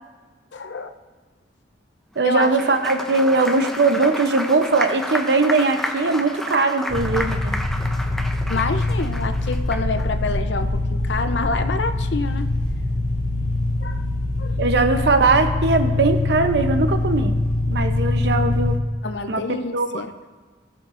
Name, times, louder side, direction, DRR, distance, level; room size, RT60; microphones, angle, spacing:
voice 1, 0.5-0.9 2.2-2.5 3.2-3.6 4.0-4.2 8.5-12.5 13.8-14.1 14.4-14.6 19.0-20.1, left 3 dB, 75° left, 9 dB, 0.6 m, -27 dB
Applause, 2.2-10.1, equal, ahead, 0.5 m, -31 dB
voice 2, 2.2-7.6 14.6-17.4 17.7-18.8 19.3-19.4 19.7-20.0, right 3 dB, 65° right, 7 dB, 0.7 m, -20 dB
sound 1, 6.9-18.8, left 2 dB, 40° left, 2.3 m, -23 dB
17.5 x 6.6 x 2.5 m, 1.4 s
head